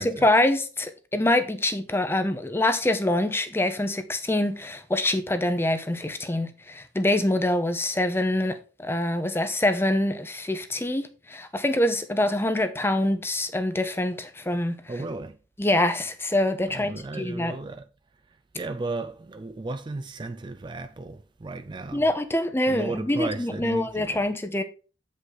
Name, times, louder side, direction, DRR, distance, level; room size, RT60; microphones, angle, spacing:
voice 1, 0.0-14.8 15.6-17.6 21.9-24.6, left 1 dB, 15° left, 0.7 m, -25 dB
voice 2, 14.9-15.4 16.7-17.8 18.5-22.0 22.7-24.2, right 3 dB, 25° right, 0.4 m, -34 dB
8.0 x 5.3 x 4.0 m
head